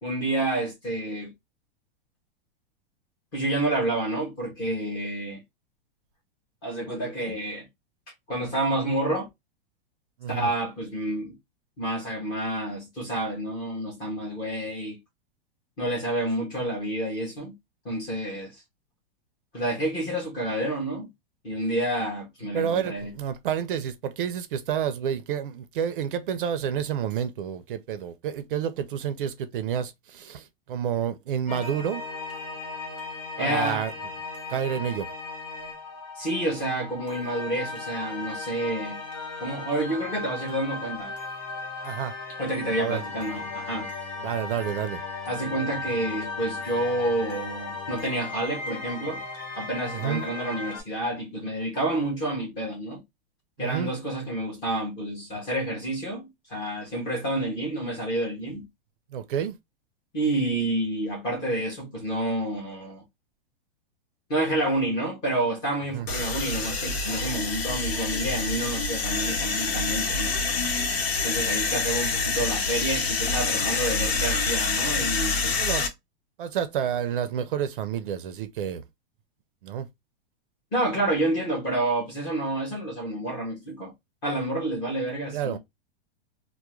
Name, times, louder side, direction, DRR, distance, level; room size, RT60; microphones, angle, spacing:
voice 1, 0.0-1.3 3.3-5.4 6.6-7.7 8.3-9.3 10.3-11.4 11.8-15.0 15.8-17.5 17.8-18.6 19.5-21.1 21.4-23.1 33.4-33.8 36.2-39.0 39.4-41.1 42.4-43.9 45.2-49.2 49.6-53.0 53.6-58.6 60.1-63.0 64.3-70.4 71.2-75.7 80.7-83.9 84.2-85.6, right 1 dB, 15° left, 0.5 m, -29 dB
voice 2, 22.5-32.0 33.4-33.9 34.5-35.1 41.8-42.1 42.8-43.0 44.2-45.0 49.9-50.2 53.6-53.9 59.1-59.6 65.9-66.1 75.6-75.9 76.4-78.8 79.6-79.9 85.3-85.6, right 8 dB, 60° right, 0.5 m, -29 dB
sound 1, 31.5-50.8, left 3 dB, 40° left, 0.9 m, -36 dB
sound 2, 66.1-75.9, left 3 dB, 90° left, 1.0 m, -27 dB
2.3 x 2.1 x 2.9 m
supercardioid pair, 175°, 30 cm